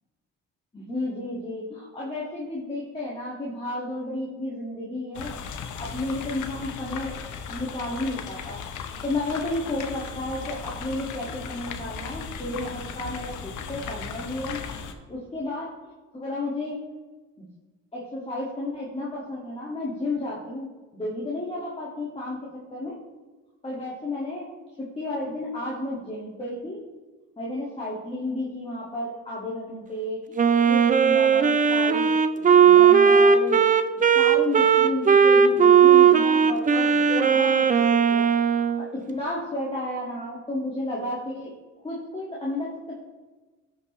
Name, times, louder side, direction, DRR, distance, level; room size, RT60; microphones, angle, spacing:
voice 1, 0.7-5.4 5.8-7.2 7.5-14.6 14.9-15.7 16.1-16.8 17.4-17.5 17.9-22.9 23.6-24.5 24.8-26.8 27.4-30.4 30.7-32.1 32.6-33.6 34.1-41.5 41.8-42.9, left 1 dB, 20° left, -6 dB, 1.9 m, -32 dB
sound 1, 5.1-14.9, left 6 dB, 75° left, 0.8 m, -37 dB
Wind instrument woodwind instrument, 30.4-38.9, right 7 dB, 25° right, 0.5 m, -17 dB
14.0 x 5.5 x 3.1 m, 1.3 s
cardioid pair, 90°, 30 cm